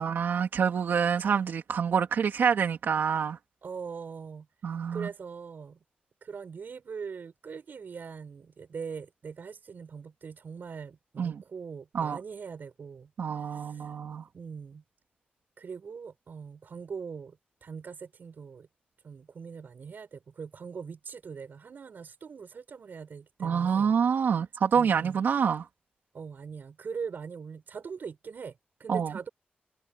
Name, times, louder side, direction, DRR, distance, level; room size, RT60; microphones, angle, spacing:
voice 1, 0.0-3.4 4.6-5.1 11.2-11.4 11.9-12.2 13.2-14.3 23.4-25.7 28.9-29.1, right 7 dB, 90° right, 2.9 m, -27 dB
voice 2, 3.6-4.5 4.9-5.8 6.2-14.0 14.3-14.8 15.6-18.7 19.0-24.0 24.7-25.2 26.1-29.3, right 6 dB, 65° right, 6.8 m, -41 dB
wide cardioid pair, 95°, 3 cm